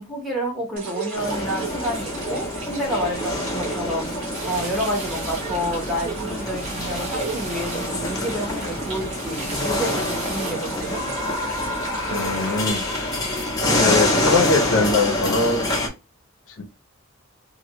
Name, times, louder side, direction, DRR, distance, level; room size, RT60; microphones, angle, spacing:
voice 1, 0.0-4.1 4.4-11.0, equal, ahead, 1.0 m, -29 dB
sound 1, 0.8-12.7, right 5 dB, 90° right, 1.1 m, -36 dB
sound 2, 1.1-15.9, left 1 dB, 20° left, 0.7 m, -26 dB
sound 3, 4.3-10.5, right 2 dB, 30° right, 1.0 m, -35 dB
voice 2, 12.1-12.8 13.8-15.8 16.6-16.7, left 3 dB, 70° left, 0.6 m, -22 dB
2.9 x 2.5 x 3.0 m
head